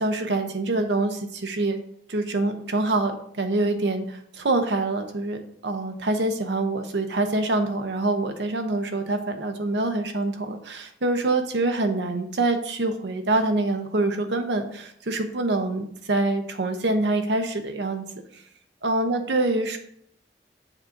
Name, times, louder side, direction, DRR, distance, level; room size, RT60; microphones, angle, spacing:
voice 1, 0.0-1.8 2.1-18.0 18.8-19.8, right 2 dB, 70° right, 6 dB, 0.8 m, -25 dB
7.2 x 2.6 x 5.6 m, 0.69 s
head